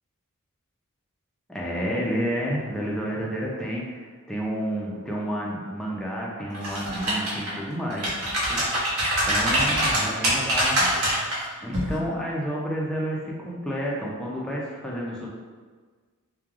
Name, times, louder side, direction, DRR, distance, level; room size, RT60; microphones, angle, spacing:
voice 1, 1.5-8.1 8.5-8.7 9.2-10.8 11.6-15.3, equal, 5° left, -4 dB, 0.4 m, -30 dB
sound 1, 6.5-7.5 7.9-11.4 11.7-11.9, equal, 65° right, 0.7 m, -24 dB
3.1 x 2.2 x 2.3 m, 1.5 s
head